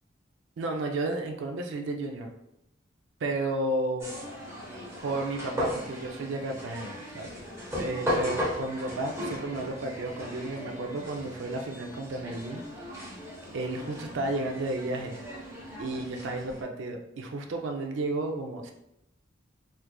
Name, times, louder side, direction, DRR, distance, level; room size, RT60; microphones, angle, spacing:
voice 1, 0.6-2.3 3.2-4.1 5.0-12.6 13.5-15.2 15.8-18.7, right 2 dB, 70° right, 3 dB, 0.4 m, -32 dB
sound 1, 4.0-16.6, equal, 15° right, 0.7 m, -37 dB
4.3 x 2.4 x 2.2 m, 0.82 s
head